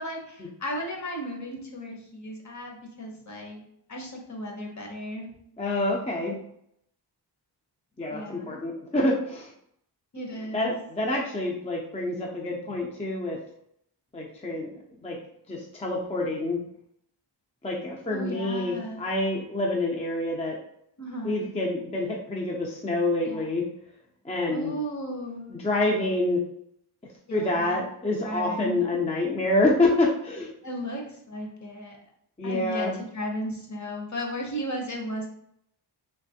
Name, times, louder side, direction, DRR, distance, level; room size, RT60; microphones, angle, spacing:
voice 1, 0.0-5.3 8.1-8.6 10.1-10.7 18.1-19.1 21.0-21.5 23.2-23.4 24.5-25.7 27.3-27.9 28.2-28.8 30.6-32.0 32.4-32.9 33.1-35.3, equal, 40° left, 1 dB, 0.9 m, -35 dB
voice 2, 5.6-6.4 8.0-9.5 10.5-13.4 14.1-14.7 15.0-15.2 15.5-16.6 17.6-20.6 21.2-23.6 24.2-24.7 25.5-26.4 27.3-30.5 32.4-33.0, left 2 dB, 15° left, -1 dB, 0.4 m, -27 dB
3.3 x 2.9 x 2.7 m, 0.74 s
wide cardioid pair, 95°, 43 cm